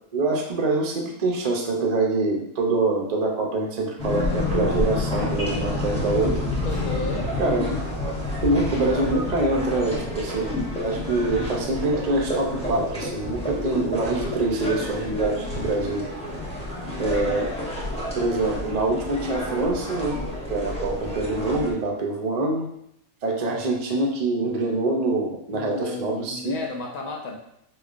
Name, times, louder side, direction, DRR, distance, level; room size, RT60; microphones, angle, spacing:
voice 1, 0.1-6.4 7.4-7.7 8.4-10.6 10.8-16.0 17.0-17.5 18.1-20.2 20.5-22.7 23.2-26.5, right 2 dB, 65° right, 0 dB, 0.4 m, -25 dB
sound 1, 4.0-21.7, left 1 dB, 5° left, 0.6 m, -29 dB
voice 2, 6.6-7.3 25.5-27.4, left 2 dB, 75° left, 1 dB, 1.1 m, -33 dB
Acoustic guitar, 6.7-10.6, left 4 dB, 25° left, 1.0 m, -42 dB
4.9 x 2.2 x 2.4 m, 0.76 s
omnidirectional pair, 1.5 m